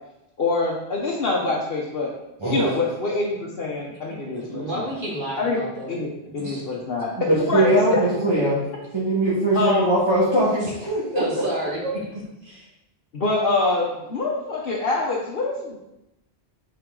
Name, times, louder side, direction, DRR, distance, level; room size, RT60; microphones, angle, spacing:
voice 1, 0.4-2.1 2.5-4.9 5.4-5.6 5.9-6.1 6.3-7.1 7.4-8.0 9.5-9.9 13.1-15.8, left 3 dB, 65° left, -4 dB, 1.2 m, -25 dB
voice 2, 4.3-6.0 6.3-6.6 11.1-12.7, equal, 55° right, -4 dB, 1.8 m, -31 dB
voice 3, 7.2-8.6 8.9-11.2, right 1 dB, 25° right, -9 dB, 1.6 m, -21 dB
7.7 x 4.8 x 3.8 m, 0.89 s
omnidirectional pair, 1.0 m